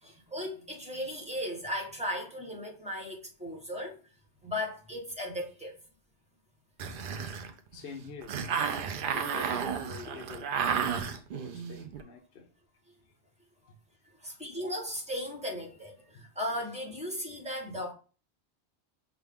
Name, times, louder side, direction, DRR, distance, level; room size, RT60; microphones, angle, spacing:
voice 1, 0.0-4.0 4.4-5.8 14.2-17.9, left 1 dB, 5° right, 1.0 m, -36 dB
sound 1, 6.8-12.0, right 7 dB, 60° right, 0.6 m, -32 dB
voice 2, 7.7-8.3 9.1-12.4, left 6 dB, 60° left, 0.8 m, -46 dB
5.9 x 2.3 x 3.5 m
omnidirectional pair, 1.2 m